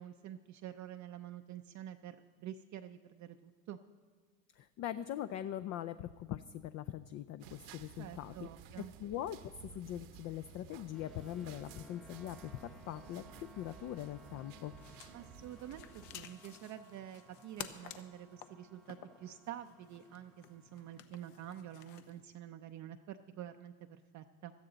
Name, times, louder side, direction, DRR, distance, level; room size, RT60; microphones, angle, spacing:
voice 1, 0.0-3.8 8.0-8.9 15.1-24.5, right 11 dB, 35° right, 7 dB, 0.6 m, -48 dB
voice 2, 4.6-8.5 8.8-14.7, left 11 dB, 35° left, 12 dB, 0.4 m, -42 dB
sound 1, 7.4-16.2, right 8 dB, 60° right, 1.1 m, -55 dB
sound 2, 10.9-21.0, equal, ahead, 0.8 m, -61 dB
sound 3, 14.7-22.2, left 11 dB, 75° left, 1.1 m, -53 dB
16.5 x 13.0 x 4.0 m, 1.5 s
hypercardioid pair, 90°, 49 cm